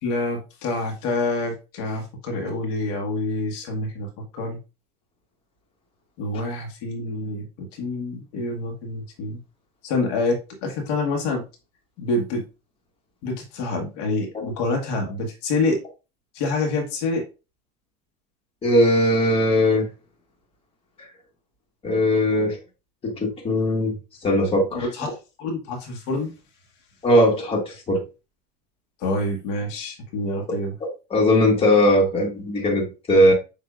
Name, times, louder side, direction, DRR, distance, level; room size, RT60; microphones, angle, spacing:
voice 1, 0.0-4.6 6.2-9.4 9.8-11.4 12.0-12.4 13.2-15.8 16.3-17.2 24.7-25.1 25.4-26.3 29.0-30.7, left 2 dB, 75° left, 1.3 m, -27 dB
voice 2, 18.6-19.9 21.8-22.6 23.0-23.9 24.2-24.9 27.0-28.0 31.1-33.3, left 1 dB, 25° left, 1.5 m, -19 dB
6.8 x 2.7 x 2.4 m
supercardioid pair, 120°, 21 cm